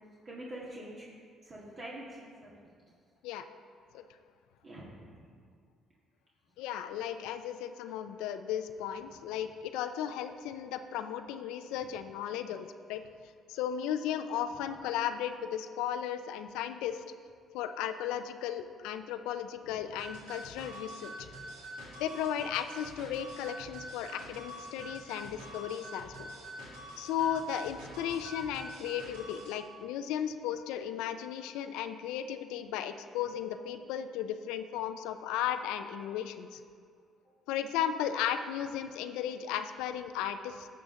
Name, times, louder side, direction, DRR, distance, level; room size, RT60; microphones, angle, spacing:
voice 1, 0.3-1.1 1.4-2.6 4.6-5.3 19.7-19.8, right 1 dB, 45° right, -5 dB, 1.8 m, -45 dB
voice 2, 6.6-13.0 13.5-17.0 17.5-21.1 22.0-26.3 27.0-36.6 37.5-40.7, left 9 dB, 80° left, 9 dB, 0.4 m, -35 dB
sound 1, 20.0-29.6, right 1 dB, 90° right, 1.8 m, -45 dB
11.5 x 7.0 x 3.8 m, 2.1 s
supercardioid pair, 60°, 0 cm